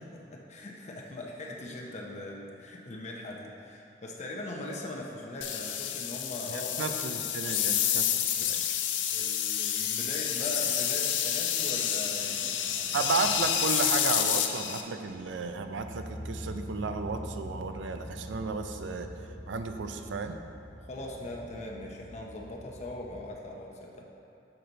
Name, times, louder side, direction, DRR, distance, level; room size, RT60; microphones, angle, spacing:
voice 1, 0.0-6.9 9.1-13.1 20.9-24.0, left 1 dB, 40° left, -1 dB, 0.6 m, -40 dB
sound 1, 5.4-14.8, left 9 dB, 85° left, 0.5 m, -29 dB
voice 2, 6.5-8.6 12.9-19.1 19.5-20.4, right 4 dB, 75° right, 7 dB, 0.4 m, -33 dB
sound 2, 15.1-23.3, equal, 10° left, 1.1 m, -44 dB
6.6 x 5.9 x 3.9 m, 2.6 s
head